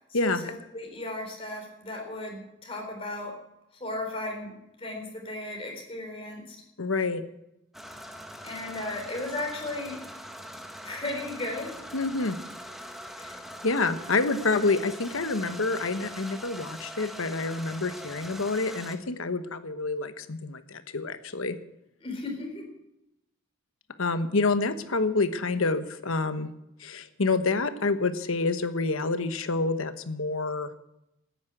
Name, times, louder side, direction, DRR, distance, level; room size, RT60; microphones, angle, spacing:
voice 1, 0.1-3.4 3.8-6.6 8.4-10.0 10.8-11.7 22.0-22.7, left 2 dB, 25° left, 1 dB, 4.0 m, -35 dB
voice 2, 6.8-7.2 11.9-12.4 13.2-13.3 13.6-21.6 24.0-26.5 26.8-30.7, left 3 dB, 85° left, 10 dB, 1.1 m, -28 dB
sound 1, 7.7-19.0, equal, ahead, 1.2 m, -42 dB
14.0 x 9.7 x 7.8 m, 0.85 s
head